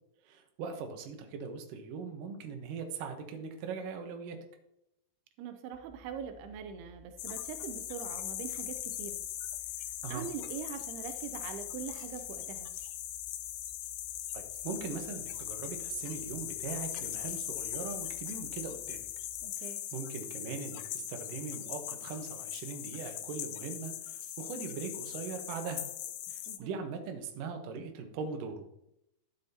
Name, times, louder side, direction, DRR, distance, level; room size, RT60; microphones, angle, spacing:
voice 1, 0.2-4.4 10.0-10.3 14.3-19.0 19.6-25.8 26.3-28.6, right 5 dB, 70° right, 4 dB, 2.4 m, -40 dB
voice 2, 5.4-9.2 10.1-12.7 19.4-19.8 26.5-26.7, right 8 dB, 85° right, 7 dB, 2.6 m, -42 dB
sound 1, 5.7-19.4, left 1 dB, 20° right, 1.1 m, -59 dB
sound 2, 7.2-26.6, left 12 dB, 80° left, 2.1 m, -40 dB
sound 3, 10.8-13.0 13.7-14.0 14.5-15.7 16.0-16.4 16.8-17.5 17.8-25.7, equal, 45° right, 4.6 m, -62 dB
11.5 x 7.0 x 2.8 m, 0.80 s
omnidirectional pair, 4.5 m